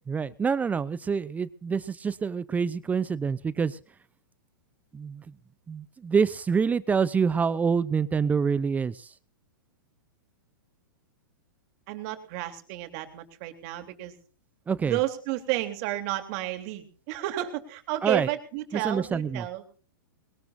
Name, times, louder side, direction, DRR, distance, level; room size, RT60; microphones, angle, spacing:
voice 1, 0.1-3.8 4.9-5.3 5.7-9.1 14.7-15.0 18.0-18.3 18.7-19.5, right 6 dB, 15° right, 17 dB, 0.6 m, -26 dB
voice 2, 11.9-14.2 14.8-19.6, right 15 dB, 45° right, 6 dB, 3.3 m, -31 dB
21.5 x 19.5 x 2.7 m, 0.39 s
hypercardioid pair, 120°, 11 cm